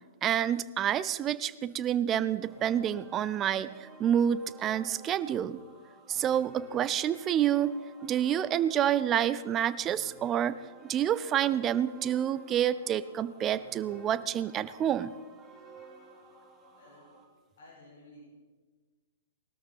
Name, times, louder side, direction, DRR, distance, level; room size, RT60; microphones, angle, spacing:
voice 1, 0.2-5.6 6.1-7.7 8.0-10.6 10.9-15.1, right 10 dB, 25° right, 16 dB, 0.6 m, -28 dB
sound 1, 2.5-17.2, right 3 dB, ahead, 2.9 m, -53 dB
voice 2, 16.7-17.1 17.6-18.2, left 2 dB, 60° left, -4 dB, 5.4 m, -54 dB
20.0 x 13.0 x 4.2 m, 1.4 s
figure-of-eight pair, 110°, 0 cm